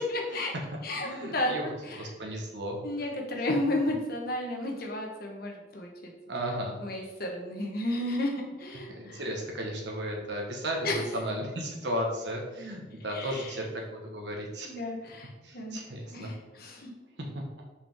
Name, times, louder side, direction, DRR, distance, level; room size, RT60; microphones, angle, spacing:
voice 1, 0.1-0.5 0.8-2.1 2.8-6.1 6.8-9.2 10.8-11.1 13.1-13.6 14.6-15.8 16.1-16.9, left 1 dB, 55° left, 1 dB, 1.2 m, -33 dB
voice 2, 1.0-1.7 2.0-2.8 6.3-6.8 8.9-14.7 15.4-16.3 17.2-17.4, equal, 70° right, 0 dB, 1.3 m, -34 dB
5.9 x 4.9 x 3.6 m, 1.1 s
head